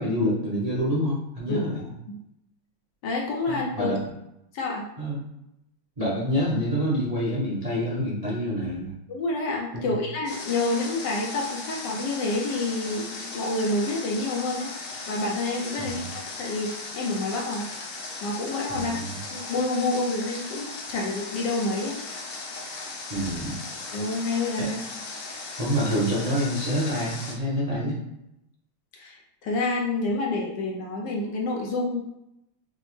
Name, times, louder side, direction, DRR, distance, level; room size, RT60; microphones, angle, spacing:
voice 1, 0.0-1.9 3.5-4.1 5.0-5.2 6.0-9.0 9.7-10.0 15.8-16.1 18.7-19.2 23.1-23.6 24.6-24.7 25.6-28.0, equal, 75° right, -6 dB, 0.3 m, -27 dB
voice 2, 3.0-3.9 4.5-4.9 9.1-14.7 15.1-16.0 16.4-17.7 18.2-19.0 19.3-22.0 23.9-24.8 28.9-32.0, left 2 dB, 70° left, -1 dB, 1.1 m, -28 dB
Water, 10.3-27.3, left 3 dB, 90° left, 1.7 m, -37 dB
6.2 x 2.1 x 3.1 m, 0.85 s
omnidirectional pair, 2.3 m